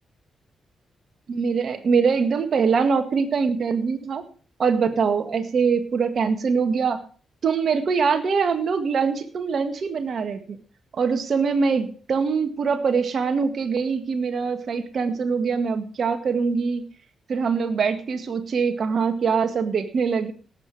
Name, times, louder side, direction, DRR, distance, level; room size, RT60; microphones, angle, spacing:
voice 1, 1.3-4.2 4.6-7.0 7.4-10.6 10.9-16.8 17.3-20.3, right 5 dB, 60° right, 9 dB, 1.8 m, -23 dB
18.0 x 8.1 x 4.9 m, 0.40 s
hypercardioid pair, 40°, 0 cm